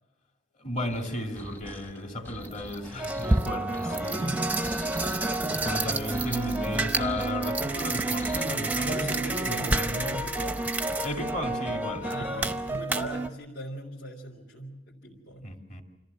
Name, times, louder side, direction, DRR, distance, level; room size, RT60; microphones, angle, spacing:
voice 1, 0.6-4.0 5.5-10.2 11.0-12.5 15.4-15.8, left 1 dB, 35° left, 2 dB, 2.5 m, -34 dB
sound 1, 0.9-9.2, equal, 10° left, 1.0 m, -43 dB
sound 2, 1.6-1.7 2.4-13.3, right 2 dB, 10° right, 0.6 m, -29 dB
voice 2, 3.8-4.5 5.9-6.8 8.8-10.7 12.0-15.5, right 1 dB, 65° left, -4 dB, 3.1 m, -39 dB
26.0 x 14.5 x 7.7 m, 1.1 s
head